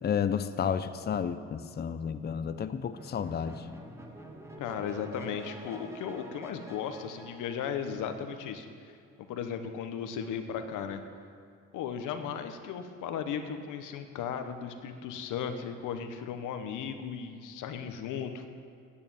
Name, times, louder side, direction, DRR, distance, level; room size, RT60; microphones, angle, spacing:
voice 1, 0.0-3.7, left 7 dB, 35° left, 11 dB, 0.6 m, -31 dB
sound 1, 3.0-8.4, equal, 10° right, 1.7 m, -48 dB
voice 2, 4.6-8.9 9.3-11.0 11.7-18.5, left 7 dB, 90° left, 8 dB, 1.0 m, -36 dB
9.4 x 8.6 x 8.6 m, 2.4 s
cardioid pair, 90°, 30 cm